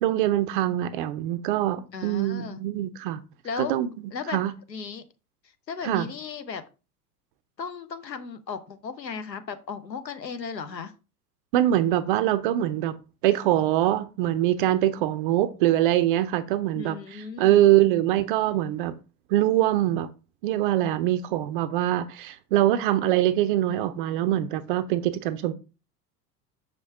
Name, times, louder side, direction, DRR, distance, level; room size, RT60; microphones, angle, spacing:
voice 1, 0.0-3.2 3.6-3.9 4.3-4.5 5.8-6.1 11.5-12.9 13.2-17.0 17.4-18.9 19.3-20.1 20.4-25.5, right 13 dB, 35° right, 0.4 m, -23 dB
voice 2, 1.9-2.6 3.4-3.7 4.1-4.4 4.7-5.0 5.7-6.6 7.6-10.9 16.7-17.7, left 6 dB, 80° left, 0.8 m, -35 dB
6.1 x 5.2 x 3.3 m
figure-of-eight pair, 85°, 49 cm